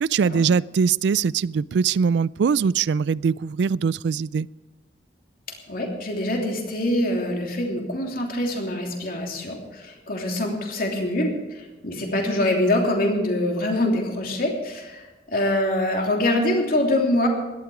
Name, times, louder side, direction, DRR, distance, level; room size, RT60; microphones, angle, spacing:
voice 1, 0.0-4.5, right 6 dB, 75° right, 22 dB, 0.3 m, -22 dB
voice 2, 5.7-15.0 15.3-17.3, left 1 dB, 55° left, 1 dB, 3.1 m, -24 dB
17.5 x 12.5 x 5.0 m, 1.1 s
head